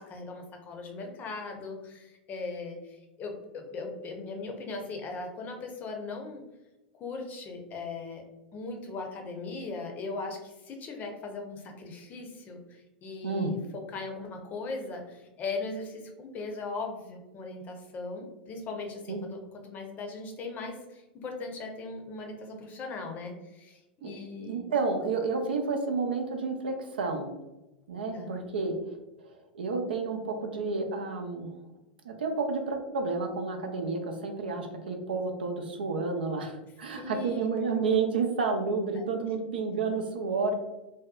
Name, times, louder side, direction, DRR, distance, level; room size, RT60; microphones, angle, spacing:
voice 1, 0.0-6.4 6.9-8.2 8.5-19.4 19.6-24.6 28.1-28.3 36.9-37.5 39.0-39.2, left 3 dB, 35° left, 2 dB, 0.6 m, -39 dB
voice 2, 13.2-13.5 19.1-19.2 24.0-24.1 24.4-27.3 27.9-28.8 29.2-29.3 29.5-31.5 32.0-40.5, right 4 dB, 75° right, 4 dB, 0.4 m, -30 dB
2.6 x 2.2 x 2.2 m, 1.0 s
hypercardioid pair, 95°, 5 cm